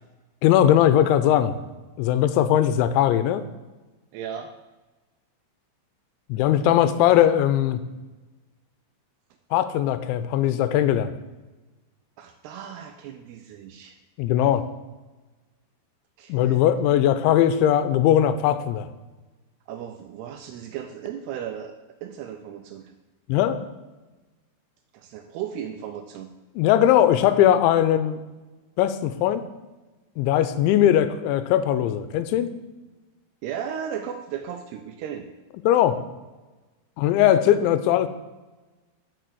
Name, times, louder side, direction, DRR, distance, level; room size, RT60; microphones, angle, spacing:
voice 1, 0.4-1.6 2.0-3.4 6.3-7.8 9.5-11.1 14.2-14.7 16.3-18.9 23.3-23.6 26.6-28.2 28.8-29.4 30.2-32.5 35.7-36.0 37.0-38.1, left 11 dB, 90° left, 12 dB, 3.0 m, -20 dB
voice 2, 4.1-4.5 12.2-14.0 16.2-16.6 19.7-21.8 22.0-22.9 24.9-26.3 33.4-35.3, right 9 dB, 85° right, 6 dB, 2.3 m, -35 dB
6.8 x 6.4 x 7.6 m, 1.2 s
omnidirectional pair, 5.3 m